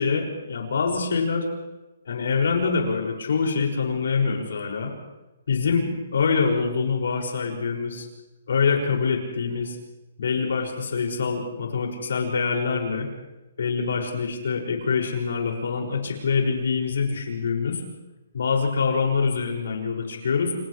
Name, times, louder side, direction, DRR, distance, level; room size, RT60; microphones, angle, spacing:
voice 1, 0.0-1.5 2.0-4.9 5.5-8.1 8.5-9.8 10.2-13.1 13.6-17.8 18.3-20.5, left 5 dB, 75° left, 0 dB, 6.5 m, -25 dB
29.5 x 28.0 x 3.4 m, 1.0 s
hypercardioid pair, 165°, 0 cm